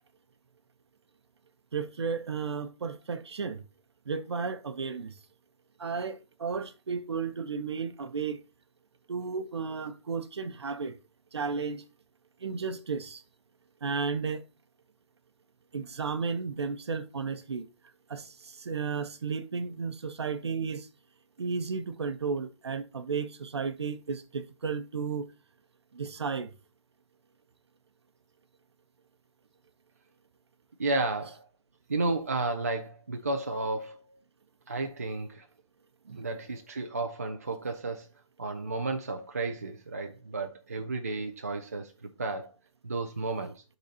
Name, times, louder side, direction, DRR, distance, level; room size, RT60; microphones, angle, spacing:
voice 1, 1.7-3.6 4.1-5.1 5.8-8.4 9.1-11.0 11.3-11.8 12.4-13.2 13.8-14.4 15.7-17.6 18.1-20.9 21.4-25.3 25.9-26.5 36.0-36.3, right 5 dB, 55° right, 0.8 m, -33 dB
voice 2, 30.8-31.4 31.9-34.0 34.7-35.4 36.2-38.1 38.4-41.9 42.2-42.5 42.8-43.6, right 3 dB, 30° right, 0.4 m, -32 dB
11.5 x 3.9 x 2.8 m
hypercardioid pair, 180°, 17 cm